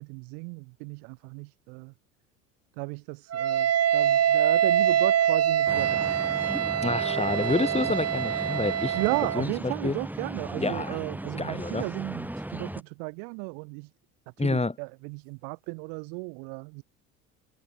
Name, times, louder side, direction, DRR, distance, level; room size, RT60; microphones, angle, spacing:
voice 1, 0.0-1.9 2.8-6.4 8.9-13.9 14.4-16.8, right 40 dB or more, 70° right, 5.8 m, -35 dB
Wind instrument woodwind instrument, 3.3-9.5, right 10 dB, 35° right, 1.6 m, -24 dB
sound 1, 5.7-12.8, right 1 dB, 5° right, 2.5 m, -36 dB
voice 2, 6.8-9.0 9.3-10.0 10.6-11.0 11.4-11.9 14.4-14.8, left 3 dB, 15° left, 7.6 m, -28 dB
hypercardioid pair, 75°, 41 cm